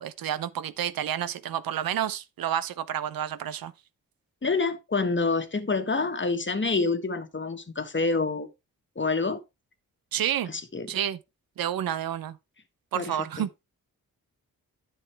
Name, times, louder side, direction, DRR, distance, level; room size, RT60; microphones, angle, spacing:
voice 1, 0.0-3.7 10.1-10.5 10.9-11.2 11.6-12.4 12.9-13.5, right 10 dB, 80° right, 0.7 m, -30 dB
voice 2, 4.4-8.5 8.9-9.4 10.5-10.9 12.9-13.5, left 3 dB, 35° left, 1.5 m, -27 dB
10.0 x 6.0 x 3.4 m
cardioid pair, 55°, 35 cm